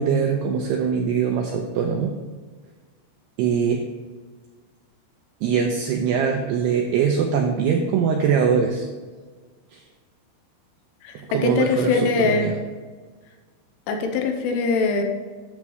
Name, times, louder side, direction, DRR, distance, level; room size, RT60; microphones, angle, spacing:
voice 1, 0.0-2.1 3.4-3.8 5.4-8.9 9.7-9.8 11.3-12.5, right 6 dB, 90° right, 2 dB, 2.4 m, -22 dB
voice 2, 11.0-12.5 13.9-15.0, left 4 dB, 80° left, 4 dB, 3.2 m, -22 dB
12.0 x 7.4 x 3.2 m, 1.4 s
omnidirectional pair, 5.7 m